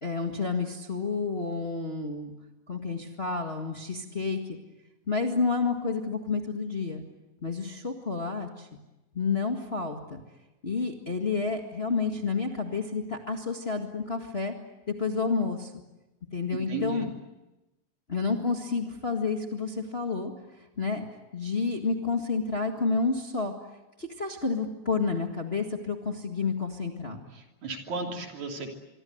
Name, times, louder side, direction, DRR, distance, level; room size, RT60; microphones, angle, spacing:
voice 1, 0.0-2.3 2.7-4.6 5.1-7.0 7.4-8.7 9.1-10.2 10.6-14.5 14.9-15.7 16.3-17.1 18.1-20.3 20.6-21.0 21.3-23.5 24.0-27.2, left 4 dB, 25° left, 3 dB, 1.6 m, -30 dB
voice 2, 16.7-17.1 27.3-28.7, right 3 dB, 70° right, 2 dB, 4.4 m, -34 dB
25.5 x 24.0 x 7.9 m, 1.0 s
omnidirectional pair, 3.4 m